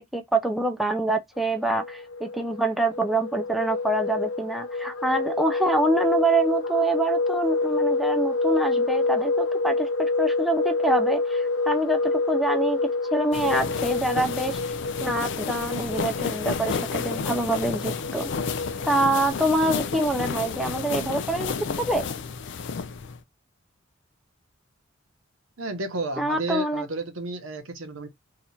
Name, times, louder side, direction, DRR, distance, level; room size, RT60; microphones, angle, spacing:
voice 1, 0.0-12.8 13.1-14.6 15.0-18.3 18.9-22.1 26.2-26.8, right 2 dB, ahead, 0.4 m, -25 dB
sound 1, 1.6-19.3, left 3 dB, 85° left, 0.8 m, -28 dB
sound 2, 13.3-23.2, left 5 dB, 60° left, 0.4 m, -31 dB
voice 2, 25.6-28.1, right 2 dB, 80° right, 0.9 m, -32 dB
2.9 x 2.4 x 4.1 m
head